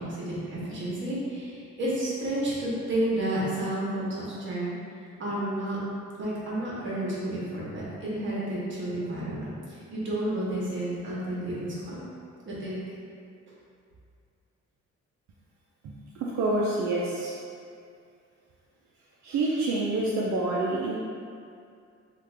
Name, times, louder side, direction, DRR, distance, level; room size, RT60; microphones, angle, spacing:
voice 1, 0.0-4.7 5.2-5.8 6.2-12.0 12.4-12.8, right 1 dB, 40° right, -7 dB, 1.1 m, -31 dB
voice 2, 15.8-17.4 19.2-21.0, right 2 dB, 75° right, -5 dB, 0.5 m, -27 dB
3.2 x 2.4 x 3.3 m, 2.3 s
cardioid pair, 125°, 29 cm